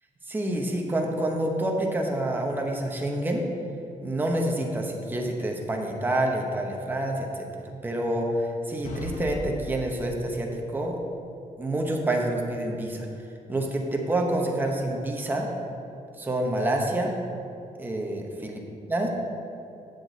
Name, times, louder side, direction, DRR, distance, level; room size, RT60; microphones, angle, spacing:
voice 1, 0.3-3.5 4.0-7.5 7.8-11.0 11.6-13.1 13.5-15.5 16.2-17.1 17.8-18.6 18.9-19.1, right 1 dB, 15° right, 1 dB, 0.9 m, -27 dB
sound 1, 8.8-10.5, left 1 dB, 75° left, 1.0 m, -37 dB
8.2 x 7.8 x 4.0 m, 2.8 s
cardioid pair, 165°, 13 cm